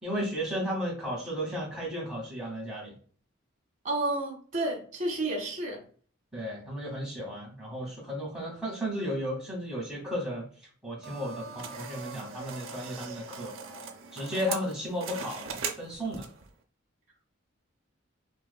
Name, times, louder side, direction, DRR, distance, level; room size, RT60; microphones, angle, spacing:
voice 1, 0.0-3.0 6.3-10.5 10.8-13.5 14.1-16.3, equal, 5° right, 1.8 m, -34 dB
voice 2, 3.8-5.8, right 2 dB, 40° right, 1.5 m, -31 dB
sound 1, 11.0-16.5, right 6 dB, 85° right, 0.6 m, -40 dB
5.9 x 2.6 x 2.2 m
head